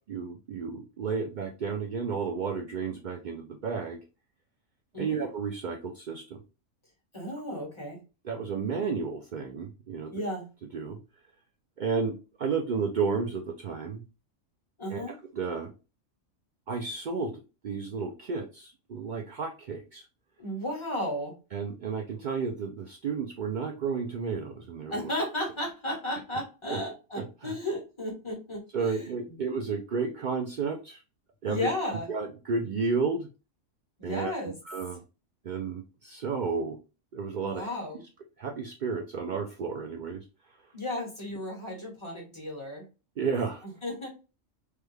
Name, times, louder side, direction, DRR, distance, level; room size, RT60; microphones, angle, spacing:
voice 1, 0.1-4.0 5.0-6.2 8.2-10.1 10.7-11.0 11.8-12.1 12.4-14.0 14.9-15.0 15.3-15.7 16.7-20.0 21.5-25.1 26.7-26.8 27.2-27.5 28.7-31.0 31.4-31.7 32.1-33.3 34.0-34.3 34.7-35.0 35.4-36.8 37.1-37.7 38.4-40.2 43.2-43.6, right 5 dB, 80° right, 2 dB, 0.4 m, -32 dB
voice 2, 7.1-8.0 10.1-10.5 14.8-15.1 20.4-21.3 24.9-29.4 31.5-32.1 34.0-34.6 37.4-38.0 40.7-42.8 43.6-44.1, left 1 dB, 25° left, -1 dB, 1.2 m, -34 dB
3.3 x 2.2 x 3.2 m, 0.31 s
omnidirectional pair, 1.4 m